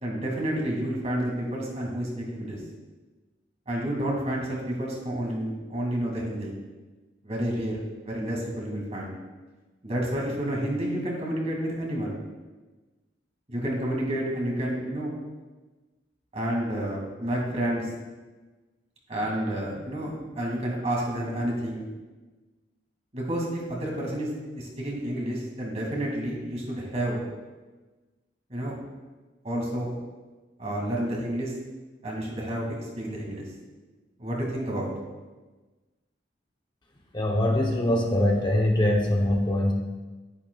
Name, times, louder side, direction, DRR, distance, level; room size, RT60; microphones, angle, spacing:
voice 1, 0.0-2.6 3.7-6.5 7.2-9.1 9.8-12.2 13.5-15.1 16.3-17.9 19.1-21.8 23.1-24.3 24.6-27.2 28.5-28.8 29.4-29.9 30.6-31.5 32.0-33.4 34.2-34.9, right 1 dB, 40° right, -2 dB, 2.3 m, -30 dB
voice 2, 37.1-39.7, left 1 dB, 25° left, 1 dB, 0.9 m, -23 dB
10.5 x 10.0 x 2.4 m, 1.2 s
head